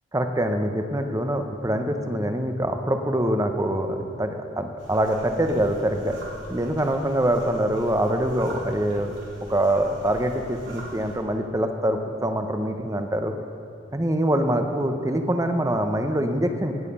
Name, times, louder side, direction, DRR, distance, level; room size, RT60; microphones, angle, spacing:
voice 1, 0.1-6.2 6.5-9.1 9.5-13.3 13.9-16.7, right 1 dB, 15° right, 6 dB, 0.8 m, -24 dB
sound 1, 4.8-11.2, right 1 dB, 85° right, 3.1 m, -43 dB
18.5 x 8.2 x 5.5 m, 2.7 s
head